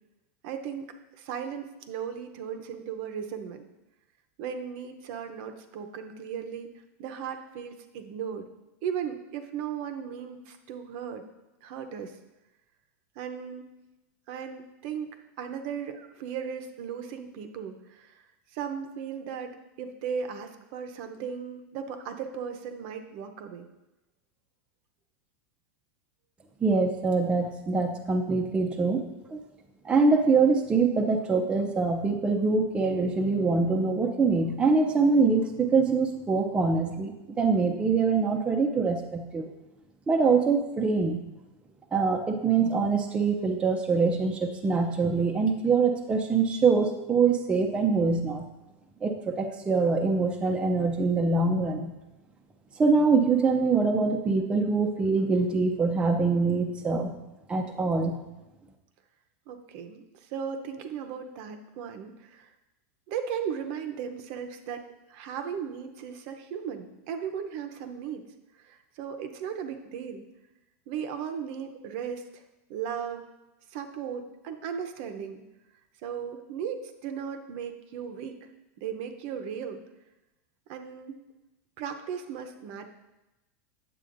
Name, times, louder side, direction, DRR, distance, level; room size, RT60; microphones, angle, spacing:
voice 1, 0.4-3.6 4.4-6.7 7.0-8.5 8.8-11.2 11.6-12.2 13.2-13.7 14.3-18.2 18.5-23.7 59.5-62.5 63.1-64.8 65.1-68.2 68.6-70.3 70.9-72.4 72.7-73.3 73.7-75.4 76.0-78.5 78.8-79.8 80.7-81.2 81.8-82.9, right 7 dB, 55° right, 7 dB, 0.7 m, -36 dB
voice 2, 26.6-29.0 29.3-29.4 29.8-39.5 40.1-41.2 41.9-48.5 49.0-51.9 52.8-57.1 57.5-58.2, right 4 dB, 15° right, 2 dB, 0.5 m, -24 dB
9.2 x 7.5 x 2.6 m, 0.99 s
supercardioid pair, 150°, 8 cm